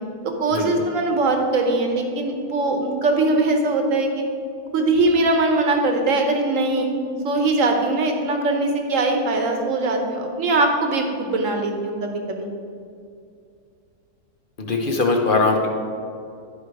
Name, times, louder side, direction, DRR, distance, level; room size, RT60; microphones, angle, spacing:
voice 1, 0.2-4.2 4.7-6.9 7.2-12.5, right 2 dB, 55° right, 3 dB, 1.4 m, -21 dB
voice 2, 14.6-15.7, left 3 dB, 40° left, 2 dB, 0.9 m, -20 dB
11.0 x 5.0 x 4.8 m, 2.4 s
omnidirectional pair, 1.7 m